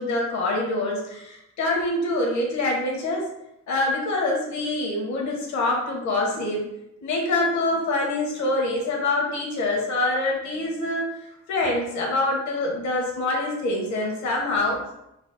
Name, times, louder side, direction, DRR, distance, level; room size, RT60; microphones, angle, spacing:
voice 1, 0.0-3.3 3.7-6.6 7.0-11.1 11.5-14.8, left 2 dB, 70° left, -1 dB, 1.2 m, -25 dB
4.1 x 2.1 x 3.9 m, 0.84 s
cardioid pair, 90°, 30 cm